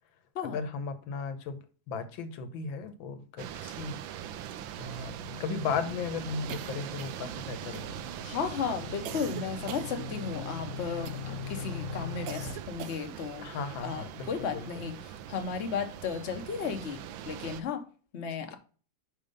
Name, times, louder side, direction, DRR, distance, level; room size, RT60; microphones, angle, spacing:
voice 1, 0.4-4.0 4.8-8.0 9.1-9.4 13.4-14.8 18.5-18.6, left 5 dB, 85° left, 1.6 m, -36 dB
sound 1, 3.4-17.6, right 10 dB, 90° right, 1.4 m, -42 dB
sound 2, 5.2-12.5, left 7 dB, 20° left, 1.0 m, -42 dB
sound 3, 6.5-7.4 7.7-8.2 9.0-10.5 11.0-11.5 12.3-13.3, right 9 dB, 70° right, 0.8 m, -43 dB
voice 2, 8.2-13.4 13.8-15.0 15.3-17.0 17.2-17.8 18.1-18.6, left 6 dB, 45° left, 1.0 m, -34 dB
5.5 x 5.1 x 5.3 m
omnidirectional pair, 2.1 m